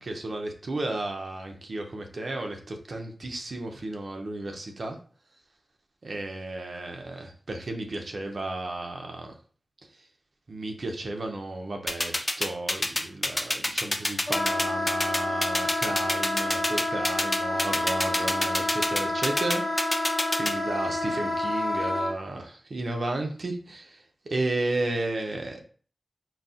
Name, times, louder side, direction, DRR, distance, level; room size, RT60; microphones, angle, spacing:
voice 1, 0.0-5.0 6.0-9.3 10.5-25.6, right 2 dB, 75° right, 3 dB, 0.5 m, -33 dB
sound 1, 11.9-20.5, left 1 dB, 25° left, 0.4 m, -26 dB
Wind instrument woodwind instrument, 14.3-22.1, left 1 dB, 65° left, 0.9 m, -29 dB
3.9 x 2.0 x 2.4 m, 0.42 s
wide cardioid pair, 60°, 0 cm